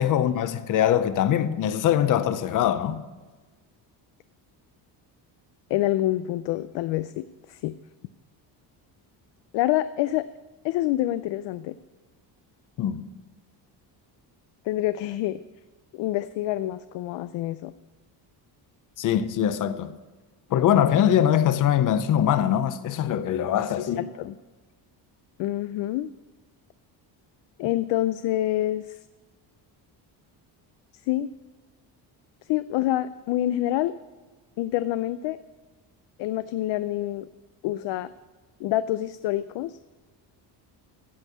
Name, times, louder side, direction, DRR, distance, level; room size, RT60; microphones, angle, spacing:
voice 1, 0.0-3.0 12.8-13.0 19.0-19.9 20.5-24.1, left 10 dB, 45° left, 0.7 m, -22 dB
voice 2, 5.7-7.7 9.5-10.3 10.6-11.7 14.6-15.4 15.9-17.7 23.8-23.9 24.2-24.4 25.4-26.1 27.6-29.0 31.1-31.3 32.5-33.9 34.6-35.4 36.2-37.3 37.6-38.1 38.6-39.8, left 14 dB, 75° left, 0.5 m, -27 dB
15.0 x 5.4 x 8.4 m
cardioid pair, 170°, 44 cm